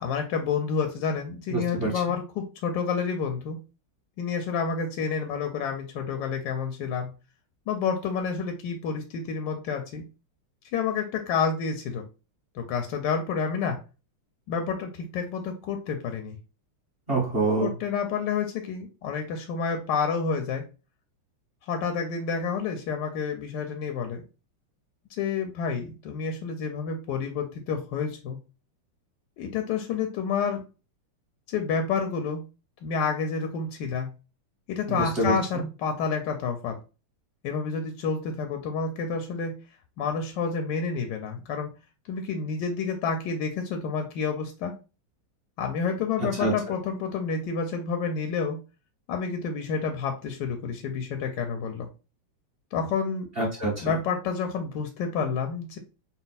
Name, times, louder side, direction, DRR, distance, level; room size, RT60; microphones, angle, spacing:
voice 1, 0.0-3.6 4.2-7.1 7.7-10.0 10.7-12.0 12.5-13.8 14.5-16.4 17.6-20.6 21.7-24.2 25.1-28.4 29.4-30.6 31.5-32.4 32.8-34.1 34.7-36.8 37.4-39.5 40.0-41.7 42.1-44.8 45.6-48.6 49.1-51.9 52.7-53.3 53.8-55.8, left 5 dB, 75° left, 4 dB, 1.0 m, -29 dB
voice 2, 1.5-2.0 17.1-17.7 34.9-35.6 46.3-46.5 53.4-54.0, right 2 dB, 35° right, -3 dB, 1.0 m, -26 dB
4.2 x 2.0 x 4.0 m, 0.32 s
omnidirectional pair, 2.3 m